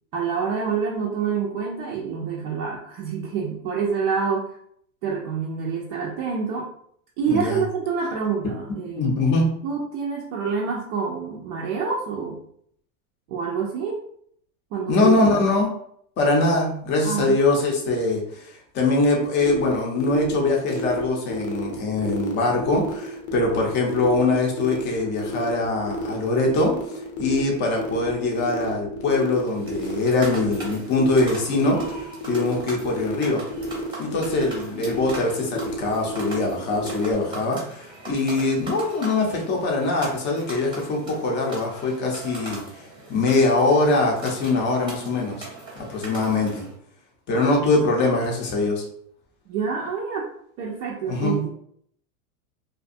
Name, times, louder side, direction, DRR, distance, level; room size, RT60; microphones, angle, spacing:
voice 1, 0.1-4.6 5.0-6.7 7.2-9.2 9.6-12.4 13.3-14.0 14.7-15.2 17.0-17.4 47.3-47.5 49.5-50.3 50.6-51.5, right 6 dB, 40° right, -3 dB, 0.4 m, -27 dB
voice 2, 7.3-7.6 9.0-9.5 14.9-15.7 16.2-26.7 27.2-33.4 34.0-42.6 43.1-45.5 45.8-46.7 47.3-48.8 51.1-51.4, left 2 dB, 25° left, 0 dB, 0.6 m, -22 dB
sound 1, 19.4-37.1, left 1 dB, 60° left, 0.7 m, -32 dB
sound 2, 29.4-46.7, right 2 dB, 10° right, 0.7 m, -40 dB
2.5 x 2.3 x 2.5 m, 0.67 s
supercardioid pair, 140°, 42 cm